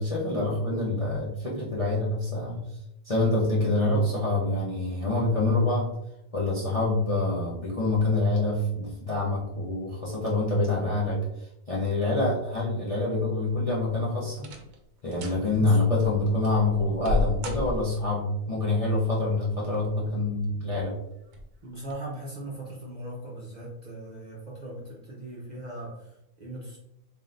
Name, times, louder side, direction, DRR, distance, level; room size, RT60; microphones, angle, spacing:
voice 1, 0.0-2.6 3.0-5.9 6.3-14.5 15.0-21.0, left 2 dB, 30° left, -6 dB, 0.7 m, -26 dB
sound 1, 13.4-13.9 14.3-14.8 15.1-15.4 16.0-18.2 19.4-20.0 20.4-20.5 21.3-21.5 21.9-22.0, left 2 dB, 70° right, 1.1 m, -32 dB
voice 2, 21.6-26.8, right 1 dB, 35° right, -4 dB, 0.8 m, -39 dB
3.8 x 3.8 x 2.6 m, 0.82 s
omnidirectional pair, 1.5 m